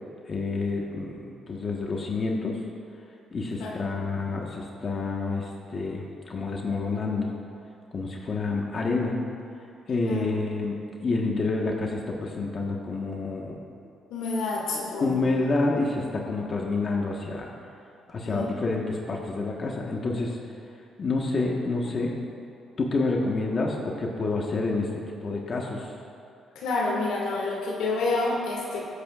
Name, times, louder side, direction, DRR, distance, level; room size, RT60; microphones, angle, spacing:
voice 1, 0.3-2.6 3.3-7.3 7.9-9.2 9.9-13.6 15.0-17.5 18.1-20.4 21.0-22.1 22.8-24.9 25.2-25.9, left 3 dB, 45° left, -1 dB, 1.4 m, -28 dB
voice 2, 14.1-15.1 18.2-18.5 26.6-28.9, left 3 dB, 85° left, -2 dB, 2.2 m, -28 dB
22.0 x 8.3 x 2.5 m, 2.7 s
supercardioid pair, 70°, 0 cm